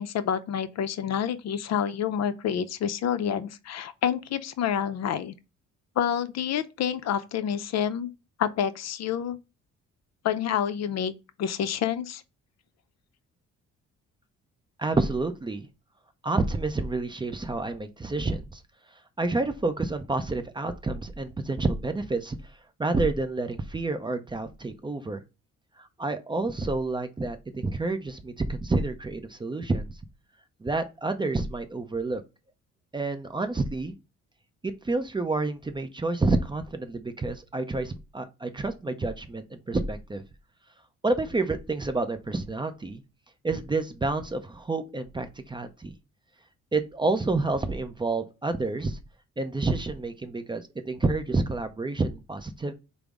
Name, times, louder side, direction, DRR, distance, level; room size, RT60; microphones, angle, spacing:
voice 1, 0.0-5.3 6.0-8.1 8.4-9.4 10.2-11.1 11.4-12.2, left 8 dB, 60° left, 0.5 m, -28 dB
voice 2, 14.8-15.7 16.2-18.6 19.2-22.4 22.8-25.2 25.8-29.9 30.6-32.2 32.9-33.9 34.6-40.2 41.0-43.0 43.4-45.9 46.7-49.0 49.4-52.7, right 3 dB, 15° right, 0.5 m, -29 dB
4.9 x 2.0 x 3.4 m
cardioid pair, 90°, 30 cm